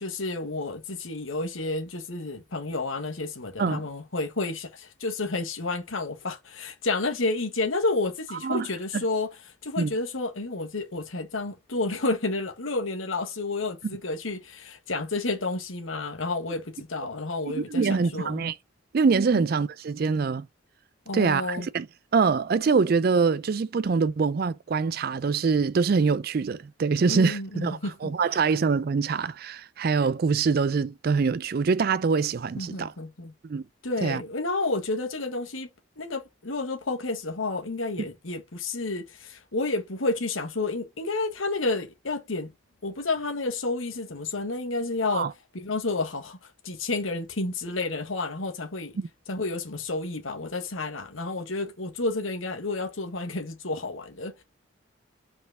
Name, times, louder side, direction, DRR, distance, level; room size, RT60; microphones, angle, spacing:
voice 1, 0.0-18.4 19.3-19.4 21.1-21.7 27.1-28.1 32.5-33.3 33.8-35.7 36.0-42.5 42.8-45.3 45.5-46.4 46.6-48.9 49.3-54.3, left 3 dB, 80° left, 1.5 m, -30 dB
voice 2, 17.5-18.6 18.9-20.5 21.1-21.9 22.1-32.9 33.4-33.6 34.0-34.2 38.0-38.1 45.1-45.3 49.0-49.1, right 5 dB, 50° right, 0.4 m, -24 dB
5.7 x 4.3 x 3.8 m
head